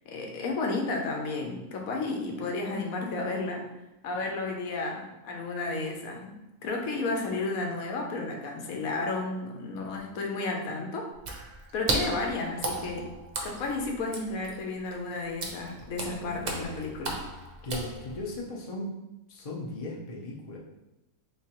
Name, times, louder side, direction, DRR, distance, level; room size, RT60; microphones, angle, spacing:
voice 1, 0.1-3.6 4.0-6.3 6.6-11.1 11.7-13.1 13.4-17.2, left 3 dB, 90° left, 1 dB, 1.1 m, -32 dB
Water / Splash splatter, 11.1-18.4, right 2 dB, 70° right, 0.4 m, -35 dB
voice 2, 17.6-19.0 19.3-20.6, left 1 dB, 55° left, -3 dB, 0.4 m, -37 dB
3.7 x 3.2 x 2.8 m, 0.95 s
omnidirectional pair, 1.4 m